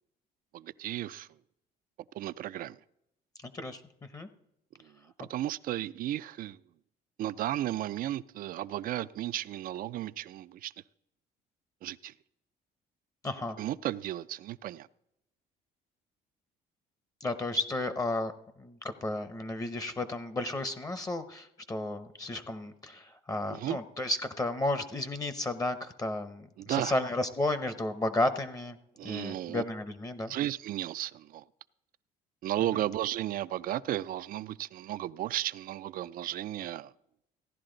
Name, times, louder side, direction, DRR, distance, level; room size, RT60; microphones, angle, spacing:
voice 1, 0.5-1.3 2.1-2.8 5.2-6.6 7.2-10.7 11.8-12.1 13.6-14.9 23.5-23.8 26.6-26.9 29.0-29.6 30.3-31.4 32.4-36.9, right 13 dB, 55° right, 15 dB, 0.4 m, -34 dB
voice 2, 3.4-3.8 4.1-4.3 13.2-13.6 17.2-18.3 18.6-28.8 29.0-30.3 32.7-32.8, left 2 dB, 20° left, 11 dB, 0.7 m, -33 dB
15.5 x 10.5 x 3.9 m, 0.81 s
cardioid pair, 110°, 17 cm